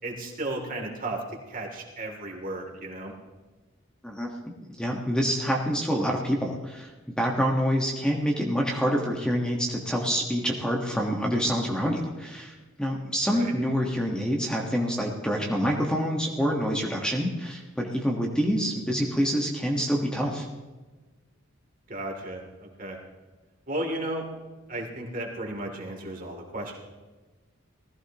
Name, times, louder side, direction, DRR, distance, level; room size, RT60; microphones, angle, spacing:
voice 1, 0.0-1.2 1.5-3.1 13.3-13.5 21.9-23.0 23.7-24.3 24.7-26.8, right 1 dB, 40° right, 1 dB, 2.7 m, -34 dB
voice 2, 4.7-6.9 7.2-20.5, equal, 5° left, -1 dB, 1.3 m, -27 dB
19.5 x 15.0 x 2.9 m, 1.3 s
head